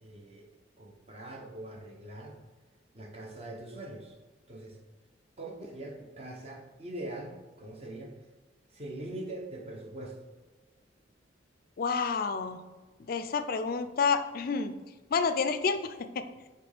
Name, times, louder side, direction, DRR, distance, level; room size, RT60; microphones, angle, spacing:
voice 1, 0.0-0.5 0.8-2.4 2.9-4.2 4.5-4.8 5.4-8.1 8.7-10.2, right 1 dB, 35° right, 0 dB, 0.9 m, -42 dB
voice 2, 11.8-12.6 13.0-14.7 15.1-16.2, left 5 dB, 50° left, 10 dB, 0.4 m, -29 dB
6.0 x 3.1 x 5.0 m, 1.3 s
head